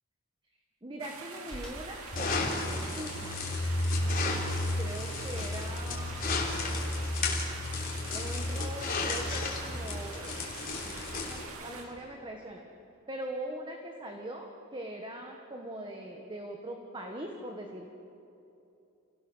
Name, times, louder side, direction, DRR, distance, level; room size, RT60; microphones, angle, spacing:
voice 1, 0.8-3.4 4.0-4.5 4.8-6.3 8.1-10.4 10.8-11.0 11.3-12.6 13.1-17.9, right 1 dB, 25° right, 2 dB, 1.5 m, -41 dB
sound 1, 1.0-11.8, right 4 dB, 80° right, 2.5 m, -45 dB
sound 2, 1.5-3.5 3.8-7.3 7.6-8.6 8.9-12.1, left 1 dB, 5° left, 5.7 m, -51 dB
sound 3, 2.1-11.5, left 2 dB, 45° left, 3.6 m, -32 dB
29.0 x 18.0 x 6.4 m, 2.8 s
head